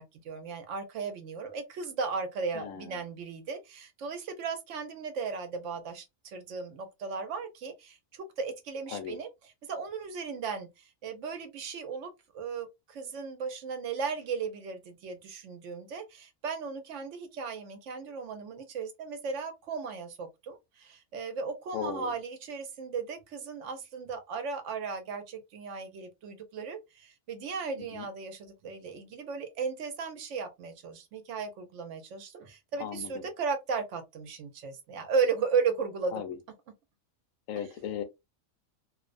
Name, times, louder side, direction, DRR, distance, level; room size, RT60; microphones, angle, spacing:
voice 1, 0.0-9.3 9.7-36.1 37.6-37.7, right 5 dB, 70° right, 0.8 m, -36 dB
voice 2, 2.5-3.0 8.9-9.2 21.7-22.1 27.9-28.0 32.8-33.2 36.1-36.4 37.5-38.0, left 9 dB, 80° left, 1.0 m, -36 dB
2.5 x 2.0 x 2.4 m
omnidirectional pair, 1.4 m